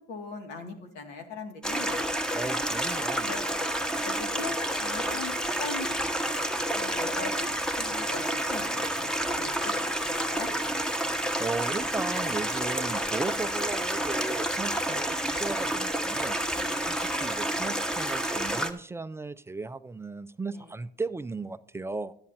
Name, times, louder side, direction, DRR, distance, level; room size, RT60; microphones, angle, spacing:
voice 1, 0.1-2.0 3.2-3.4 4.0-4.5 4.8-5.9 6.7-7.5 7.8-8.2 8.5-8.6 8.9-10.5 16.5-16.7 20.5-20.6, left 4 dB, 80° left, 4 dB, 2.2 m, -39 dB
Stream, 1.6-18.7, right 1 dB, 5° left, 0.9 m, -29 dB
voice 2, 2.3-3.3 11.2-16.4 16.8-22.1, right 3 dB, 15° right, 12 dB, 0.4 m, -36 dB
14.0 x 10.5 x 2.8 m, 0.71 s
cardioid pair, 110°, 17 cm